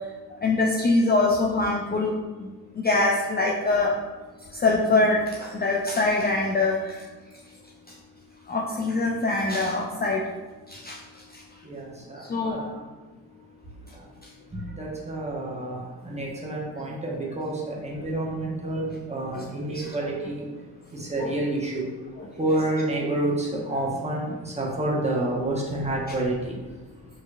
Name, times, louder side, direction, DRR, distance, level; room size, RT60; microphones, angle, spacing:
voice 1, 0.4-2.1 2.4-4.0 4.5-7.0 8.5-10.3 10.7-11.0 11.3-11.4 12.2-12.6 19.3-19.4 19.7-20.0 21.2-21.3 22.2-22.3, left 2 dB, 25° left, -1 dB, 0.5 m, -24 dB
voice 2, 11.6-12.8 14.7-20.4 20.9-21.8 22.4-26.5, right 1 dB, 15° right, -3 dB, 1.1 m, -29 dB
4.5 x 3.1 x 2.4 m, 1.3 s
hypercardioid pair, 50°, 42 cm